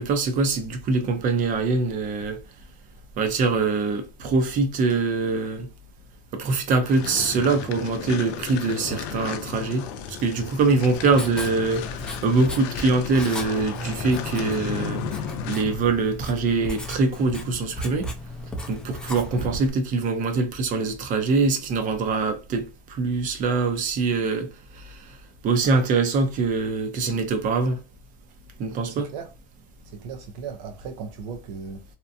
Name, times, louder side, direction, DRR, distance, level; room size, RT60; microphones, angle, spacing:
voice 1, 0.0-2.4 3.2-5.7 6.3-9.9 10.2-15.1 15.4-18.1 18.7-24.5 25.4-27.8 28.6-29.1, right 3 dB, 40° right, 0.7 m, -23 dB
sound 1, 6.8-15.8, left 7 dB, 65° left, 0.6 m, -34 dB
Writing, 10.7-19.7, left 1 dB, 5° left, 0.5 m, -36 dB
voice 2, 28.9-29.3 29.8-31.8, right 6 dB, 75° right, 0.6 m, -37 dB
2.8 x 2.2 x 2.5 m
supercardioid pair, 125°, 20 cm